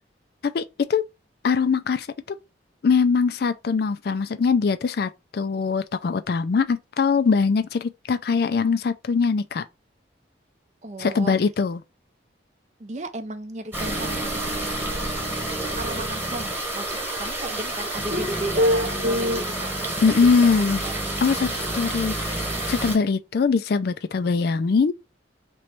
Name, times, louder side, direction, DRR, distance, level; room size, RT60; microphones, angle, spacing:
voice 1, 0.4-1.1 1.4-2.1 2.8-9.6 11.0-11.8 20.0-20.8 21.2-24.9, left 5 dB, 55° left, 0.4 m, -22 dB
voice 2, 10.8-11.3 12.8-14.7 15.7-20.5 20.8-21.0, right 2 dB, 40° right, 0.5 m, -35 dB
sound 1, 13.7-23.0, right 1 dB, 10° right, 1.2 m, -29 dB
sound 2, 13.8-16.0 18.1-19.4, left 1 dB, 55° right, 0.9 m, -27 dB
3.1 x 3.0 x 4.4 m
head